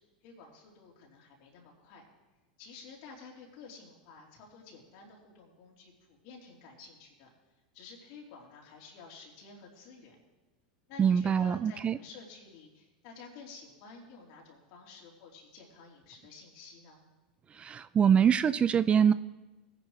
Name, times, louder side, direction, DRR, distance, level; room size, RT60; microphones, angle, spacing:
voice 1, 0.2-2.0 2.6-7.3 7.7-10.2 10.9-17.0, left 4 dB, 60° left, -1 dB, 3.5 m, -51 dB
voice 2, 11.0-12.0 17.6-19.1, right 7 dB, 25° right, 15 dB, 0.3 m, -24 dB
18.5 x 10.5 x 3.2 m, 1.1 s
hypercardioid pair, 100°, 5 cm